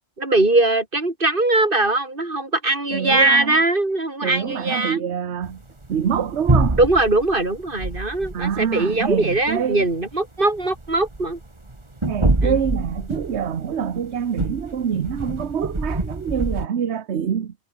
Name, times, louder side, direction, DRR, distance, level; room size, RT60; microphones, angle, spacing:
voice 1, 0.2-5.0 6.8-11.4 12.4-12.6, right 2 dB, 40° right, 4.0 m, -21 dB
voice 2, 2.9-3.6 4.2-5.6 5.9-6.8 8.3-9.8 12.0-17.5, right 8 dB, 60° right, 1.3 m, -25 dB
sound 1, 5.4-16.7, right 2 dB, 20° right, 2.0 m, -26 dB
omnidirectional pair, 1.3 m